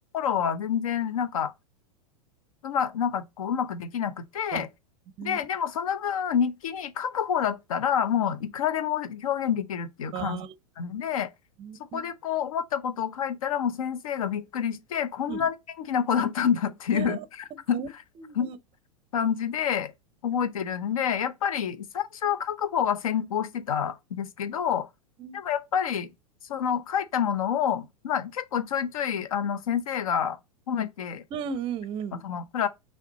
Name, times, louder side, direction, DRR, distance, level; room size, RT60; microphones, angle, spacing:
voice 1, 0.1-1.5 2.6-4.7 5.2-10.4 10.8-11.3 11.9-17.2 17.7-18.0 18.3-18.5 19.1-19.9 20.2-24.9 25.3-26.1 26.5-30.4 30.7-31.2 32.2-32.7, left 8 dB, 65° left, 0.7 m, -28 dB
voice 2, 10.1-10.5 11.6-12.0 15.3-15.5 16.9-17.2 17.7-17.9 18.2-18.6 25.2-25.4 31.3-32.2, right 7 dB, 25° right, 0.5 m, -35 dB
5.8 x 3.2 x 2.9 m
figure-of-eight pair, 95°, 20 cm